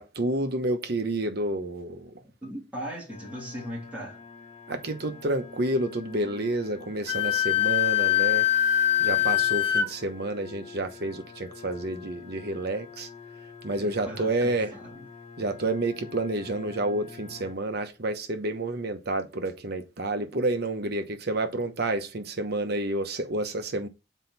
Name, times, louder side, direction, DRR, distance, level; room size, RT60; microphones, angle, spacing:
voice 1, 0.0-2.1 4.7-8.5 9.0-13.1 13.6-14.7 15.4-23.9, right 2 dB, 55° right, 1.0 m, -29 dB
voice 2, 2.4-4.3 9.2-9.4 13.8-15.1, equal, 10° right, 3.0 m, -39 dB
sound 1, 3.1-17.5, left 5 dB, 40° left, 0.9 m, -46 dB
Wind instrument woodwind instrument, 7.1-9.9, left 11 dB, 65° left, 0.7 m, -23 dB
6.4 x 4.6 x 4.1 m
head